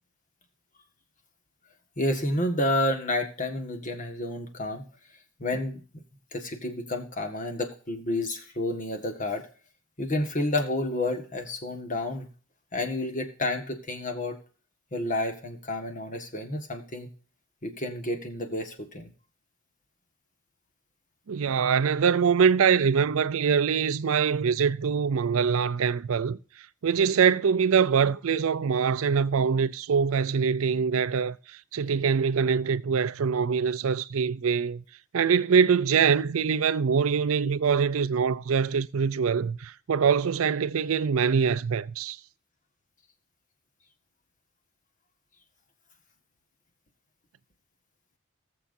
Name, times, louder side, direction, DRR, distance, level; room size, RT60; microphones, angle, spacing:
voice 1, 2.0-4.8 5.4-5.8 6.3-9.5 10.0-12.3 12.7-14.4 14.9-17.1 17.6-19.1, left 1 dB, 35° left, 1.6 m, -30 dB
voice 2, 21.3-26.4 26.8-34.8 35.1-42.2, right 6 dB, 75° right, 0.5 m, -24 dB
19.5 x 7.0 x 2.6 m
head